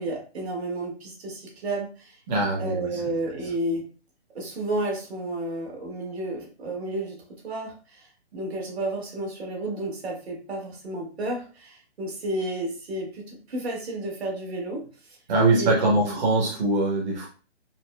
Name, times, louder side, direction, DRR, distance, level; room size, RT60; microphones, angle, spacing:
voice 1, 0.0-2.2 2.6-3.9 4.3-7.2 7.4-15.2 15.6-15.7 16.0-16.2, right 1 dB, 70° right, -1 dB, 1.5 m, -32 dB
voice 2, 2.3-3.0 15.3-17.3, right 2 dB, 40° right, -3 dB, 0.8 m, -22 dB
4.0 x 2.0 x 2.2 m, 0.36 s
hypercardioid pair, 140°, 33 cm